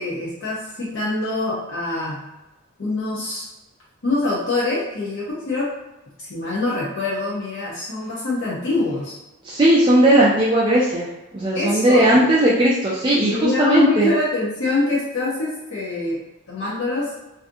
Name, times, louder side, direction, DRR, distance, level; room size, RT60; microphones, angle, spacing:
voice 1, 0.0-2.2 2.8-3.5 4.0-5.7 6.2-9.2 11.5-12.2 13.3-16.2 16.5-17.1, left 2 dB, 55° left, -6 dB, 0.6 m, -24 dB
voice 2, 9.4-11.1 11.3-14.1, right 1 dB, 20° right, -6 dB, 0.3 m, -17 dB
2.5 x 2.4 x 2.5 m, 1.0 s
head